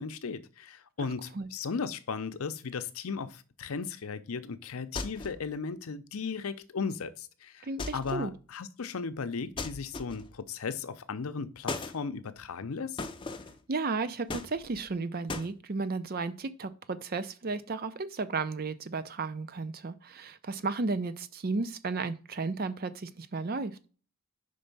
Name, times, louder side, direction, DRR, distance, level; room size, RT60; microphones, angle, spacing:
voice 1, 0.0-7.7 7.9-13.1, left 5 dB, 80° left, 0.6 m, -36 dB
sound 1, 5.0-5.5 7.8-8.3 9.6-10.4 11.7-12.0 13.0-13.6 14.3-14.9 15.3-15.5, left 3 dB, 25° left, 0.5 m, -37 dB
voice 2, 7.6-8.3 13.7-23.8, right 3 dB, 45° right, 0.5 m, -34 dB
5.3 x 4.4 x 5.3 m
head